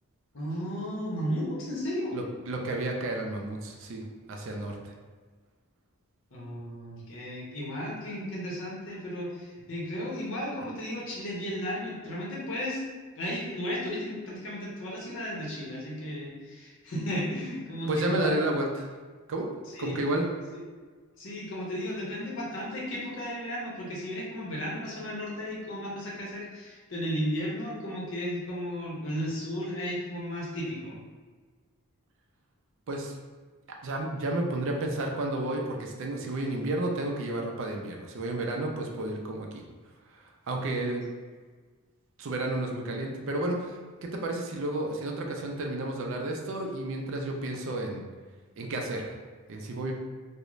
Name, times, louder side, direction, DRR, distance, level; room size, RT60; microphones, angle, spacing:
voice 1, 0.3-2.2 6.3-12.8 13.2-18.3 19.7-20.0 20.5-20.6 21.2-31.0, equal, 55° left, -5 dB, 0.7 m, -34 dB
voice 2, 2.1-4.9 17.9-18.9 19.3-19.5 19.8-20.3 32.9-33.2 33.8-39.6 40.1-41.0 42.2-48.0 48.6-49.2 49.5-49.9, right 1 dB, 60° right, 1 dB, 0.4 m, -31 dB
2.4 x 2.0 x 3.0 m, 1.5 s
head